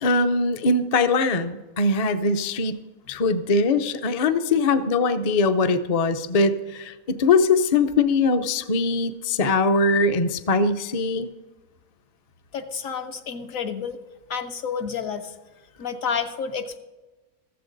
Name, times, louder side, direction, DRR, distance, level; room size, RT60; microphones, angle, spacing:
voice 1, 0.0-2.8 3.1-11.3, left 3 dB, 45° left, 8 dB, 0.4 m, -21 dB
voice 2, 12.5-14.0 14.3-15.3 15.8-16.8, left 6 dB, 70° left, 6 dB, 1.1 m, -30 dB
15.0 x 13.5 x 3.9 m, 1.2 s
omnidirectional pair, 1.5 m